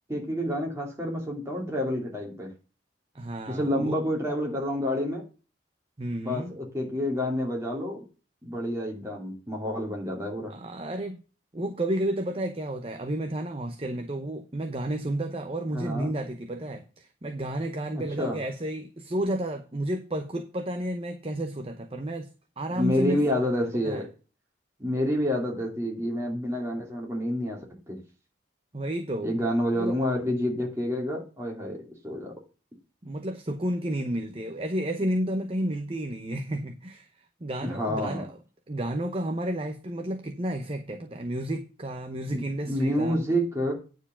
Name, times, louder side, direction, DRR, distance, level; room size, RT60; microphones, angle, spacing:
voice 1, 0.1-2.5 3.5-5.2 6.2-8.0 8.4-10.5 15.7-16.1 17.9-18.4 22.7-24.1 24.8-28.0 29.2-32.3 37.6-38.2 42.3-43.7, equal, 15° right, 2.6 m, -29 dB
voice 2, 3.1-3.9 6.0-6.6 10.5-11.2 11.5-22.3 22.6-24.1 28.7-29.3 29.7-30.0 33.0-37.1 37.4-38.4 38.7-43.2, right 1 dB, 30° right, 0.8 m, -31 dB
9.6 x 4.6 x 7.1 m
head